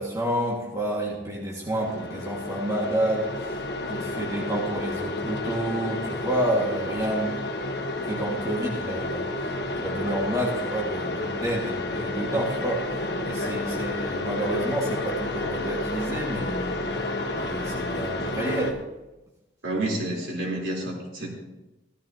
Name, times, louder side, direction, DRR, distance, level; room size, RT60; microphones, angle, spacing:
voice 1, 0.0-3.6 3.9-7.4 8.1-9.3 9.7-12.8 13.2-16.8 17.3-18.8, right 1 dB, 15° right, -4 dB, 2.0 m, -29 dB
sound 1, 1.7-18.7, left 2 dB, 55° left, 1.3 m, -31 dB
voice 2, 19.6-21.3, right 1 dB, 85° right, -2 dB, 4.0 m, -29 dB
15.5 x 12.5 x 2.9 m, 1.0 s
head